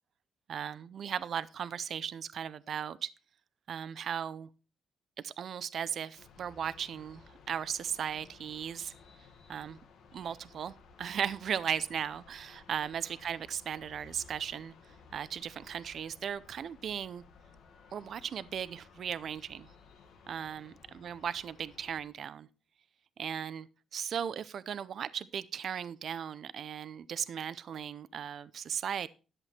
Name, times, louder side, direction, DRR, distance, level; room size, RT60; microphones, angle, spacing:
voice 1, 0.5-3.1 3.7-4.5 5.2-8.9 9.5-9.8 10.1-14.7 15.1-17.2 17.9-19.7 20.3-20.7 21.0-22.5 23.2-29.1, right 8 dB, 50° right, 0.5 m, -37 dB
sound 1, 6.1-22.0, left 5 dB, 70° left, 1.9 m, -57 dB
11.0 x 7.8 x 4.3 m
cardioid pair, 145°, 0 cm